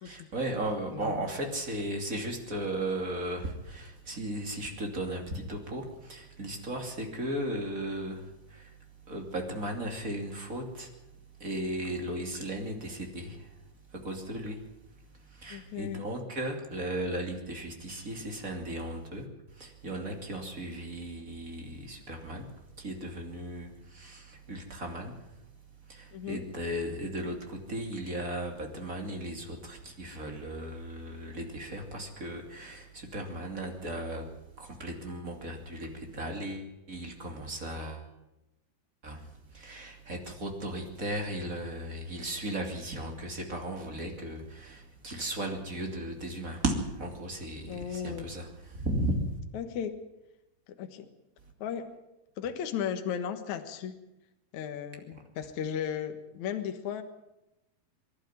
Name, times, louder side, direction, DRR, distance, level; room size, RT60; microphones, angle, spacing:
voice 1, 0.0-8.8 9.1-11.0 11.4-13.6 13.9-14.6 15.1-22.5 22.8-25.1 25.9-34.3 34.6-38.1 39.0-49.2, right 1 dB, 25° right, 2 dB, 2.5 m, -36 dB
voice 2, 0.9-1.3 15.5-16.1 26.1-26.4 47.7-48.3 49.5-50.0 50.7-51.1 51.6-51.9 52.4-53.9 54.5-57.0, left 8 dB, 60° left, 7 dB, 2.4 m, -35 dB
24.5 x 12.0 x 9.5 m, 0.93 s
omnidirectional pair, 4.6 m